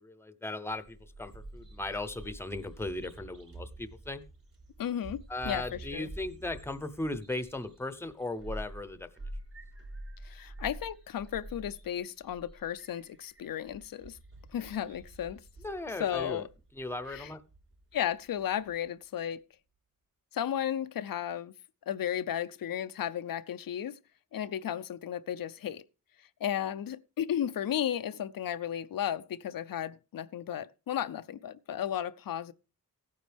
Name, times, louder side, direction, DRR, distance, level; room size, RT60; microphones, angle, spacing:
voice 1, 0.0-4.2 5.3-9.1 15.6-16.4 16.7-17.4, left 2 dB, 5° left, 0.7 m, -37 dB
Bird vocalization bird call bird song, 0.7-18.8, right 1 dB, 45° right, 4.2 m, -48 dB
voice 2, 4.8-6.1 10.2-14.2 14.5-15.4 16.0-16.5 17.1-17.3 17.9-19.4 20.3-21.5 21.9-24.0 24.3-25.8 26.4-32.5, left 10 dB, 85° left, 0.6 m, -34 dB
16.0 x 9.3 x 3.4 m
wide cardioid pair, 145°, 33 cm